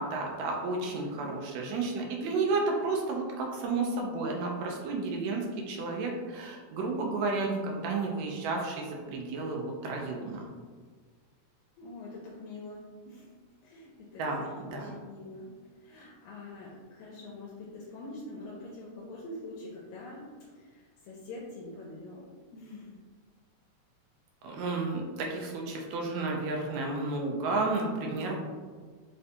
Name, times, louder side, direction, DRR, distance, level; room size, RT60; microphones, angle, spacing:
voice 1, 0.0-10.4 14.2-14.9 24.4-28.4, right 3 dB, 80° right, 0 dB, 1.7 m, -32 dB
voice 2, 0.9-1.3 11.8-13.3 13.6-22.3 22.5-23.0, left 2 dB, 80° left, -4 dB, 1.9 m, -45 dB
4.9 x 2.2 x 2.7 m, 1.5 s
omnidirectional pair, 3.4 m